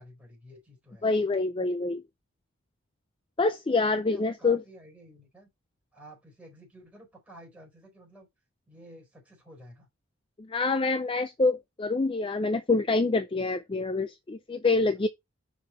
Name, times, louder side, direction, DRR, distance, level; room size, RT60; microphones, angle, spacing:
voice 1, 0.0-1.1 3.8-5.5 5.9-8.3 8.7-9.9 14.7-14.9, equal, 5° right, 4.2 m, -52 dB
voice 2, 1.0-2.0 3.4-4.6 10.5-15.1, left 3 dB, 25° left, 0.4 m, -26 dB
6.0 x 5.6 x 4.1 m
head